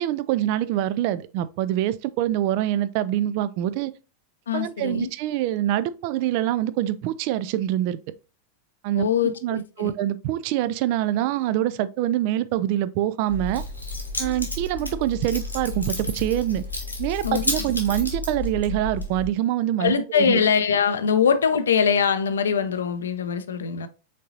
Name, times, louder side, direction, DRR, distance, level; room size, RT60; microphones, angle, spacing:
voice 1, 0.0-3.9 4.5-8.0 8.8-9.1 9.4-13.6 14.2-16.6 17.0-20.4, right 13 dB, 45° right, 0.3 m, -25 dB
voice 2, 4.5-5.1 8.9-9.9 17.2-17.4 19.8-23.9, left 7 dB, 65° left, 0.5 m, -22 dB
Keys jangling, 13.3-19.3, left 2 dB, 85° left, 1.3 m, -31 dB
5.2 x 3.8 x 2.6 m
figure-of-eight pair, 90°, 0 cm